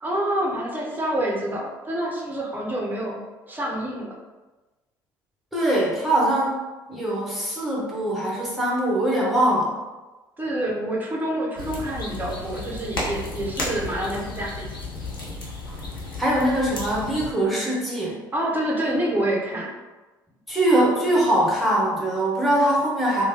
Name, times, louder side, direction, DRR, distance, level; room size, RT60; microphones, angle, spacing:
voice 1, 0.0-4.1 10.4-14.7 18.3-19.7, right 1 dB, 15° right, -2 dB, 0.7 m, -27 dB
voice 2, 5.5-6.6 6.9-9.7 16.2-18.2 20.5-23.2, right 1 dB, ahead, -6 dB, 1.1 m, -22 dB
sound 1, 11.6-17.3, left 2 dB, 80° left, 0.6 m, -33 dB
3.1 x 2.2 x 2.8 m, 1.2 s
figure-of-eight pair, 55°, 11 cm